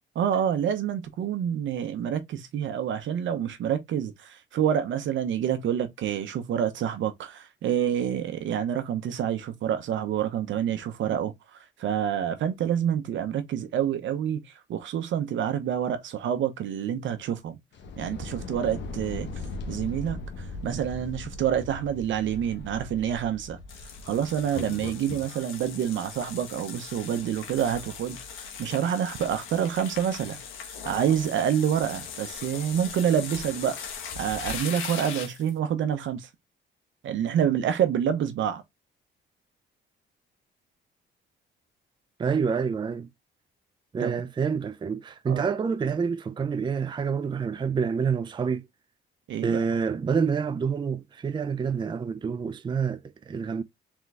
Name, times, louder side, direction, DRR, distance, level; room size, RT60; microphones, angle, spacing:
voice 1, 0.1-17.5 18.0-19.3 19.7-23.6 24.0-30.4 30.8-33.9 34.2-36.3 37.0-38.6 44.0-44.1 45.3-45.5 49.3-49.6, right 9 dB, 75° right, 0.9 m, -27 dB
sound 1, 17.7-25.3, left 3 dB, 65° left, 1.0 m, -39 dB
sound 2, 23.7-35.5, left 7 dB, 90° left, 1.3 m, -39 dB
voice 2, 42.2-43.1 43.9-48.7 49.4-53.6, right 6 dB, 25° right, 0.4 m, -27 dB
3.6 x 3.6 x 3.3 m
cardioid pair, 90°, 20 cm